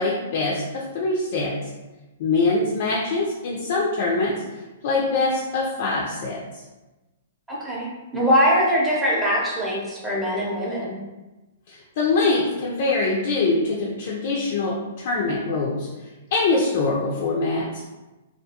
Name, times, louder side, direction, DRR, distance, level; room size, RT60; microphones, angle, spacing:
voice 1, 0.0-1.6 2.2-4.4 4.8-6.4 11.7-15.9 16.3-17.8, left 3 dB, 55° left, -3 dB, 0.4 m, -23 dB
voice 2, 7.5-11.0, equal, 5° right, -7 dB, 0.7 m, -22 dB
2.4 x 2.3 x 2.8 m, 1.1 s
hypercardioid pair, 145°, 0 cm